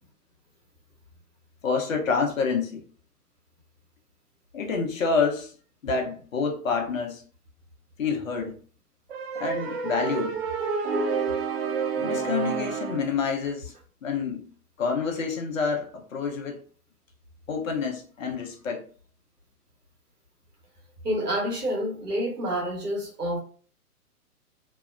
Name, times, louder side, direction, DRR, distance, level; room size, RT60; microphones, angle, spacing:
voice 1, 1.6-2.8 4.5-5.5 5.8-7.2 8.0-8.5 9.4-10.4 12.0-13.7 14.0-14.5 14.8-16.6 17.5-18.8, left 5 dB, 60° left, 0.8 m, -28 dB
sound 1, 9.1-13.1, right 5 dB, 40° right, 0.6 m, -29 dB
voice 2, 21.0-23.4, equal, 90° right, 1.1 m, -28 dB
2.7 x 2.1 x 2.4 m
figure-of-eight pair, 125°, 46 cm